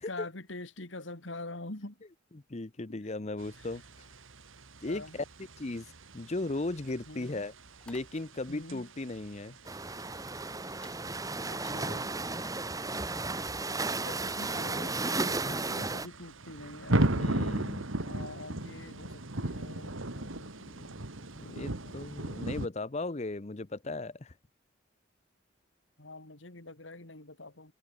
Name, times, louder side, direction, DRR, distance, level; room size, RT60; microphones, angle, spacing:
voice 1, 0.1-2.0 4.8-5.2 7.1-7.4 8.5-8.8 11.5-12.1 14.0-17.0 18.0-21.9 26.0-27.7, left 2 dB, 70° left, 2.9 m, -45 dB
voice 2, 2.3-3.8 4.8-5.2 5.6-7.5 7.9-9.6 17.1-17.9 21.4-24.3, left 2 dB, 35° left, 0.8 m, -36 dB
sound 1, 3.4-22.7, right 1 dB, 85° right, 2.5 m, -37 dB
sound 2, 6.8-10.4 10.7-11.1 11.5-11.8, left 1 dB, 5° left, 6.3 m, -60 dB
sound 3, 9.7-16.1, right 3 dB, 20° right, 2.4 m, -34 dB
head